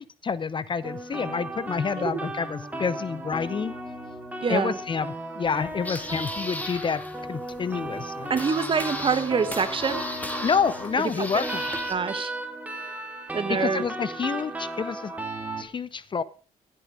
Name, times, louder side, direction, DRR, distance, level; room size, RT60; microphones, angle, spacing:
voice 1, 0.0-3.7 4.5-7.0 7.3-8.3 10.4-11.6 13.6-15.1 15.6-16.2, left 6 dB, 35° left, 18 dB, 0.7 m, -28 dB
sound 1, 0.8-15.6, right 1 dB, 10° right, 3.1 m, -35 dB
voice 2, 4.4-4.8 8.3-10.0 11.0-11.3 11.9-12.3 13.3-13.8, right 5 dB, 40° right, 12 dB, 1.6 m, -26 dB
sound 2, 5.4-11.9, left 1 dB, 10° left, 2.6 m, -36 dB
15.5 x 8.5 x 5.0 m, 0.37 s
cardioid pair, 80°, 14 cm